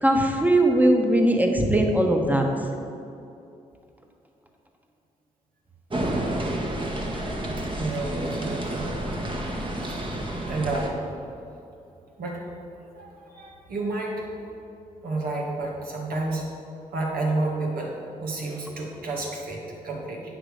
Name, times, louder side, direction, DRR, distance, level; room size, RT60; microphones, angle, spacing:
voice 1, 0.0-2.5, right 1 dB, 10° right, 2 dB, 1.4 m, -20 dB
sound 1, 5.9-10.9, right 1 dB, 30° right, 1.6 m, -30 dB
voice 2, 7.8-8.9 9.3-11.0 12.2-12.4 12.9-14.5 15.0-16.5 16.9-17.9 18.2-20.2, right 2 dB, 65° right, -2 dB, 1.9 m, -31 dB
8.6 x 5.9 x 5.0 m, 2.6 s
hypercardioid pair, 40°, 16 cm